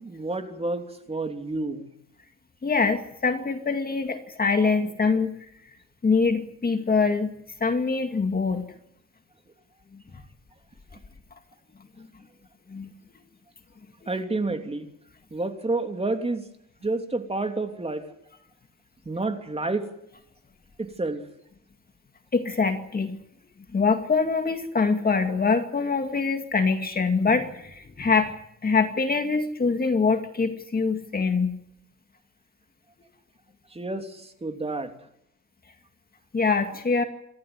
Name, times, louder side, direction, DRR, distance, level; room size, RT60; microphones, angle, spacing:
voice 1, 0.0-1.9 14.1-14.9 15.3-16.4 16.8-18.0 19.0-19.9 20.8-21.2 33.7-34.9, right 2 dB, 20° right, 5 dB, 3.2 m, -29 dB
voice 2, 2.6-5.3 6.0-7.3 7.6-8.7 9.9-10.2 12.0-12.1 12.7-12.9 22.3-23.2 23.7-28.3 28.6-31.6 36.3-37.0, left 4 dB, 30° left, 6 dB, 2.2 m, -24 dB
28.0 x 13.5 x 9.8 m, 0.76 s
cardioid pair, 105°, 31 cm